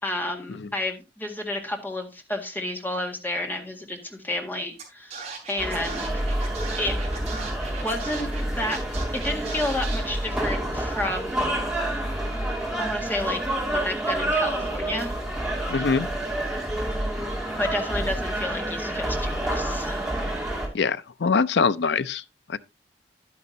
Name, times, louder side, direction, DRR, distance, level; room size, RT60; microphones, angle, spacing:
voice 1, 0.0-5.1 5.5-6.1 6.8-6.9 7.3-7.4 7.8-8.3 8.6-8.8 9.1-11.6 12.8-15.1 17.6-20.1, left 1 dB, 10° left, 1.8 m, -30 dB
Scratching (performance technique), 4.8-4.9 5.1-8.4 8.7-10.0, right 5 dB, 35° right, 4.8 m, -38 dB
sound 1, 5.6-20.7, right 1 dB, 5° right, 2.6 m, -28 dB
voice 2, 15.7-16.1 20.7-22.2 22.5-22.6, left 5 dB, 80° left, 0.5 m, -23 dB
11.0 x 9.4 x 2.8 m
head